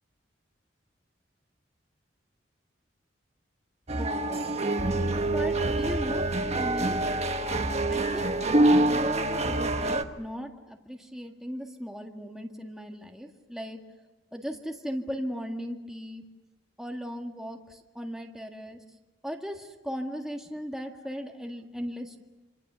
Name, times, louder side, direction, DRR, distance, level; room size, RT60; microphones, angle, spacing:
sound 1, 3.9-10.0, right 2 dB, 35° right, 1.3 m, -26 dB
voice 1, 4.0-4.6 5.3-7.1 7.9-8.4 8.7-13.8 14.3-16.2 16.8-18.8 19.2-22.2, equal, 5° right, 2 dB, 1.7 m, -37 dB
27.0 x 26.0 x 6.9 m, 1.1 s
head